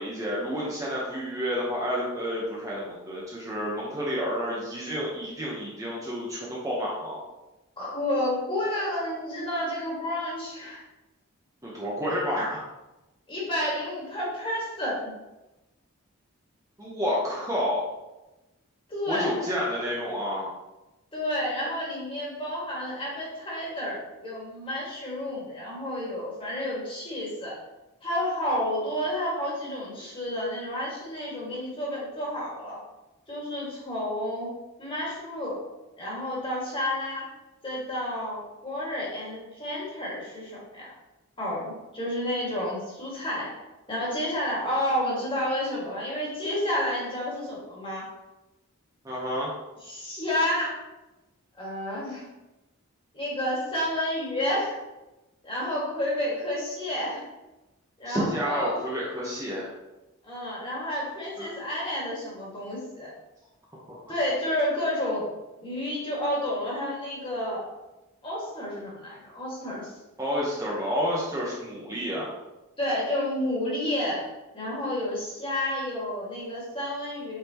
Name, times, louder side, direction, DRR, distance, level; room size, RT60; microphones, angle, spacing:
voice 1, 0.0-7.2 11.6-12.6 16.8-17.9 19.1-20.5 49.0-49.5 58.0-59.7 61.4-61.5 63.9-64.2 70.2-72.3, equal, 15° right, -5 dB, 1.0 m, -30 dB
voice 2, 7.8-10.8 13.3-15.1 18.9-19.5 21.1-27.6 28.0-32.8 33.3-34.5 34.8-35.6 36.0-37.3 37.6-40.9 41.4-43.6 43.9-48.1 49.8-50.8 51.6-52.3 53.1-54.8 55.4-57.3 58.0-58.8 60.2-63.1 64.1-65.3 65.6-67.7 68.2-69.9 72.8-77.4, left 1 dB, 25° left, -5 dB, 2.0 m, -30 dB
8.3 x 4.1 x 3.0 m, 1.0 s
head